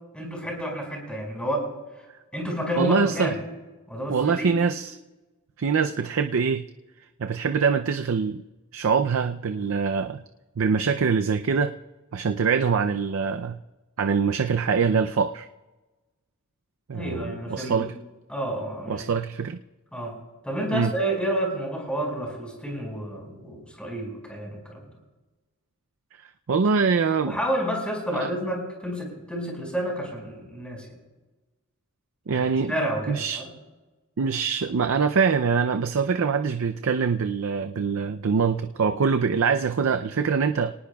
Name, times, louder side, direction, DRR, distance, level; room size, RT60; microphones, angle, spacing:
voice 1, 0.1-1.7 2.3-3.4 3.9-4.5 16.9-17.9 18.3-19.1 19.9-20.2 20.4-24.8 27.2-31.0 32.3-33.5, right 1 dB, 5° left, 0 dB, 5.2 m, -30 dB
voice 2, 2.8-3.3 4.1-4.9 5.6-6.6 7.2-8.4 8.7-10.2 10.6-11.7 12.1-13.6 14.0-15.5 16.9-17.9 18.9-19.6 20.7-20.9 26.5-27.4 28.1-28.3 32.3-32.7 33.1-33.4 34.2-40.7, right 5 dB, 65° right, 8 dB, 0.5 m, -24 dB
27.0 x 19.0 x 2.3 m, 1.2 s
head